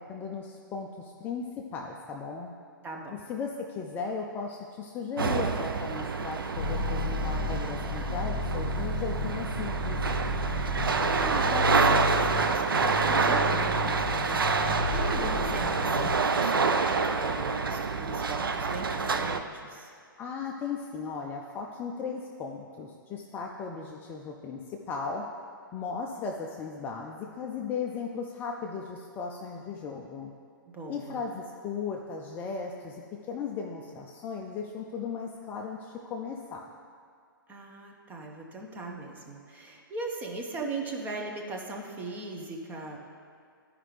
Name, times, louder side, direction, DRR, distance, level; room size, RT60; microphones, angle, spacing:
voice 1, 0.1-2.5 3.1-10.0 20.2-25.3 25.7-30.3 30.9-33.0 33.3-36.6, left 5 dB, 15° left, 1 dB, 0.4 m, -36 dB
voice 2, 2.8-3.2 11.1-19.9 30.7-31.2 37.5-43.0, right 2 dB, 15° right, 1 dB, 0.8 m, -38 dB
sound 1, 5.2-19.4, right 4 dB, 75° right, 0.5 m, -28 dB
sound 2, 6.6-16.2, left 2 dB, 55° left, 0.8 m, -32 dB
12.0 x 5.0 x 3.3 m, 2.2 s
figure-of-eight pair, 120°, 12 cm